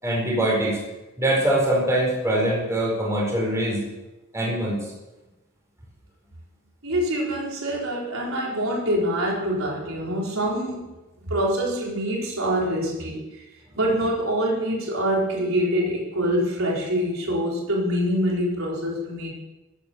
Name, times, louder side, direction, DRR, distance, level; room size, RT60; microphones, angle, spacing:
voice 1, 0.0-0.8 1.2-3.8 4.3-4.8, right 1 dB, 15° right, -3 dB, 4.5 m, -23 dB
voice 2, 6.8-10.9 11.2-13.4 13.8-19.3, equal, 75° right, -3 dB, 4.3 m, -25 dB
15.0 x 9.4 x 6.9 m, 1.0 s
head